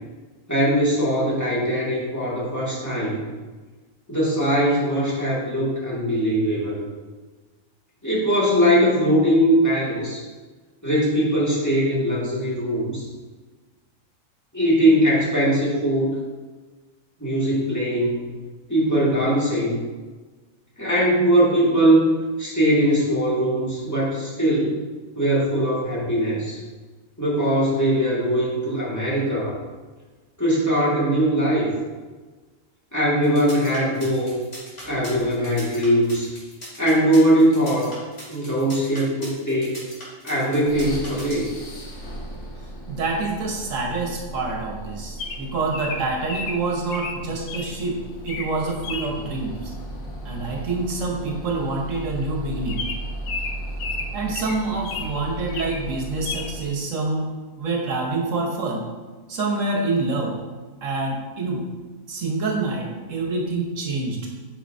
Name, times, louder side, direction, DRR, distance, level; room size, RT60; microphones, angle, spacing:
voice 1, 0.5-3.2 4.1-6.8 8.0-10.2 10.8-13.0 14.5-16.1 17.2-18.2 18.7-19.8 20.8-24.8 25.2-26.6 27.2-29.5 30.4-31.7 32.9-34.4 34.8-36.3 36.8-37.9 38.3-39.8 40.2-41.5, equal, 10° left, -8 dB, 2.0 m, -21 dB
sound 1, 33.2-41.6, equal, 45° left, 2.4 m, -40 dB
sound 2, 40.7-56.8, right 1 dB, 65° left, 1.4 m, -37 dB
voice 2, 42.9-48.0 48.2-49.7 50.2-52.8 54.1-57.3 57.6-58.9 59.3-60.4 60.8-61.7 62.1-64.2, right 3 dB, 70° right, 0 dB, 1.3 m, -26 dB
Bird vocalization bird call bird song, 45.2-47.7 48.2-48.5 48.8-49.1 50.6-50.8 51.1-51.2 51.5-51.6 52.1-52.2 52.7-55.1 55.5-55.9 56.3-56.5, left 4 dB, 85° left, 1.2 m, -33 dB
8.5 x 5.1 x 2.6 m, 1.3 s
omnidirectional pair, 1.4 m